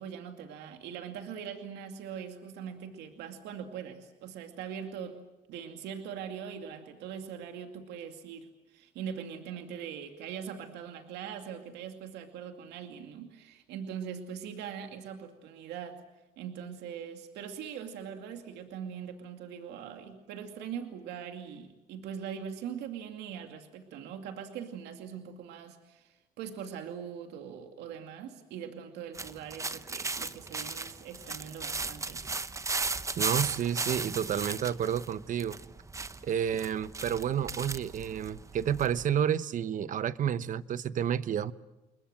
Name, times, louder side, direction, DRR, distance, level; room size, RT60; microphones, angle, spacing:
voice 1, 0.0-5.2 5.5-16.0 16.4-32.2, right 8 dB, 85° right, 5 dB, 2.5 m, -41 dB
sound 1, 29.1-39.0, right 3 dB, 20° right, 0.9 m, -36 dB
voice 2, 33.2-35.6 36.2-41.5, right 9 dB, 50° right, 15 dB, 1.0 m, -30 dB
29.0 x 22.0 x 7.7 m, 1.0 s
cardioid pair, 110°, 17 cm